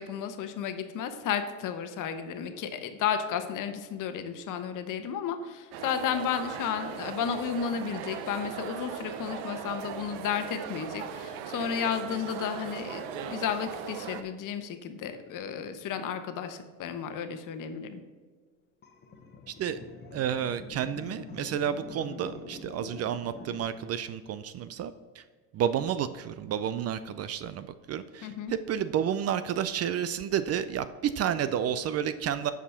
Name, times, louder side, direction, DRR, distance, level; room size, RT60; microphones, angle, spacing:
voice 1, 0.0-18.0 28.2-28.5, left 8 dB, 50° left, 8 dB, 1.1 m, -33 dB
sound 1, 5.7-14.2, right 8 dB, 65° right, 0.8 m, -39 dB
sound 2, 18.8-23.6, left 4 dB, 25° left, 1.1 m, -45 dB
voice 2, 19.5-19.8 20.1-25.2 25.5-32.5, right 9 dB, 40° right, 13 dB, 0.4 m, -31 dB
8.1 x 5.0 x 5.7 m, 1.5 s
supercardioid pair, 95°, 41 cm